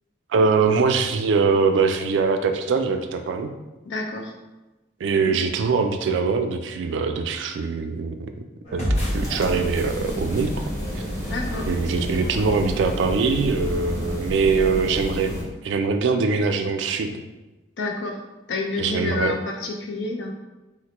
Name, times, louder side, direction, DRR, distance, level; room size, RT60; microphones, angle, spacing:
voice 1, 0.3-3.5 5.0-8.4 8.7-8.9 9.1-10.6 11.7-17.2 18.8-19.3, right 4 dB, 85° right, 7 dB, 0.3 m, -22 dB
voice 2, 3.8-4.3 5.2-5.3 11.3-11.7 17.8-18.2 18.5-20.3, left 3 dB, 70° left, 2 dB, 0.5 m, -29 dB
sound 1, 8.6-13.3, equal, 35° left, 0.8 m, -32 dB
sound 2, 8.9-15.4, equal, 15° left, 0.9 m, -30 dB
3.8 x 2.1 x 2.9 m, 1.1 s
head